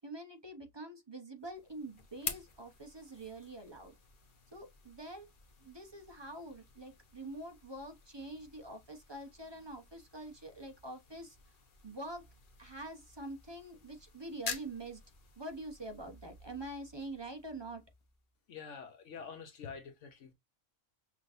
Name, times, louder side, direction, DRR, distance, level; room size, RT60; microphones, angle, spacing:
voice 1, 0.0-3.9 4.5-5.3 5.6-11.4 11.8-12.3 12.6-15.0 15.4-17.8, right 1 dB, 25° right, 0.7 m, -45 dB
sound 1, 1.4-18.3, left 5 dB, 45° left, 1.0 m, -49 dB
voice 2, 18.5-20.3, left 6 dB, 70° left, 1.1 m, -47 dB
5.9 x 3.0 x 2.5 m
omnidirectional pair, 1.3 m